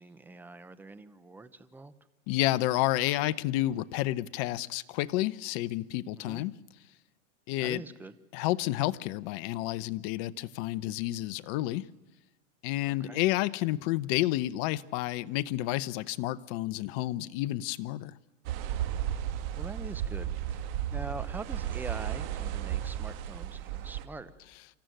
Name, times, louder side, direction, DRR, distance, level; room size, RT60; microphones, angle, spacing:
voice 1, 0.0-1.9 6.2-6.4 7.6-8.1 12.9-13.2 19.5-24.3, right 3 dB, 5° right, 0.7 m, -44 dB
voice 2, 2.3-6.6 7.5-7.8 8.3-11.9 12.6-18.1, left 16 dB, 45° left, 0.8 m, -30 dB
sound 1, 18.4-24.0, right 11 dB, 50° right, 1.9 m, -34 dB
26.0 x 14.0 x 9.1 m
hypercardioid pair, 130°, 38 cm